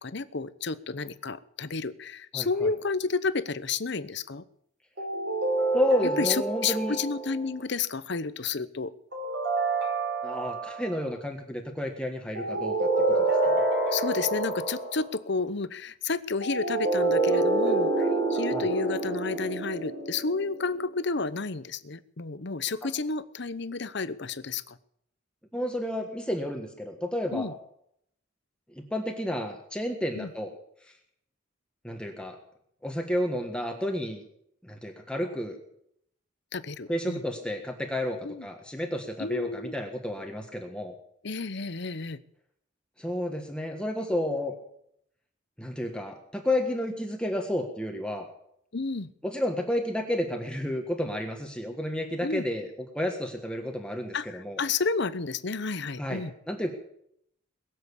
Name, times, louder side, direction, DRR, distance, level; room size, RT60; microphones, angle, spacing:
voice 1, 0.0-4.4 6.2-8.9 13.9-24.8 27.3-27.5 30.1-30.3 36.5-37.2 38.2-38.5 39.2-39.7 41.2-42.2 48.7-49.1 52.2-52.4 54.1-56.3, left 4 dB, 60° left, 15 dB, 0.9 m, -31 dB
voice 2, 2.3-2.7 5.7-7.0 10.2-13.2 13.4-13.6 18.5-18.7 22.8-22.9 25.5-27.6 28.7-30.5 30.8-31.0 31.8-32.4 32.8-34.2 34.6-35.5 36.9-40.9 43.0-44.5 45.6-48.3 49.2-54.6 56.0-56.7, left 1 dB, 5° left, 3 dB, 1.5 m, -31 dB
sound 1, 5.0-7.4 9.1-11.0 12.3-15.1 16.4-20.9, right 2 dB, 60° right, 4.9 m, -27 dB
22.0 x 7.7 x 8.4 m, 0.71 s
head